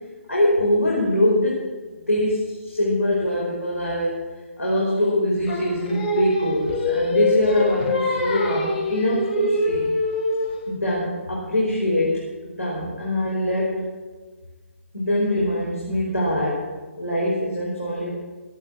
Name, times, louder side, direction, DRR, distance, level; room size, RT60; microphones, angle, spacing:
voice 1, 0.3-1.6 2.0-4.2 4.6-10.0 10.7-12.1 12.4-13.8 14.9-16.6 17.0-18.1, left 1 dB, 90° left, -5 dB, 5.2 m, -23 dB
Singing, 5.5-10.7, left 2 dB, 40° left, 2.9 m, -24 dB
20.0 x 8.9 x 6.1 m, 1.4 s
figure-of-eight pair, 140°, 7 cm